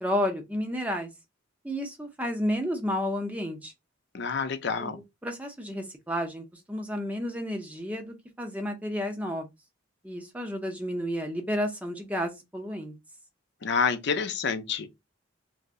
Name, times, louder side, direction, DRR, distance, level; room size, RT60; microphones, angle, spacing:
voice 1, 0.0-1.1 1.6-3.7 4.8-9.5 10.0-12.9, equal, 10° right, 0.6 m, -31 dB
voice 2, 4.1-5.0 13.6-14.9, left 5 dB, 60° left, 0.5 m, -28 dB
2.5 x 2.0 x 3.5 m
head